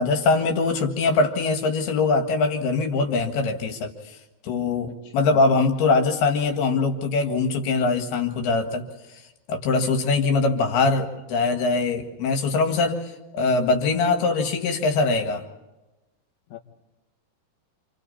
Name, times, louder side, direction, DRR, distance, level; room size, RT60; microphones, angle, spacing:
voice 1, 0.0-3.9 4.4-8.9 9.5-15.4, left 3 dB, 75° left, 5 dB, 3.8 m, -22 dB
voice 2, 4.8-5.4 16.5-16.6, left 12 dB, 55° left, 1 dB, 3.0 m, -40 dB
28.0 x 27.5 x 4.2 m, 1.1 s
omnidirectional pair, 4.5 m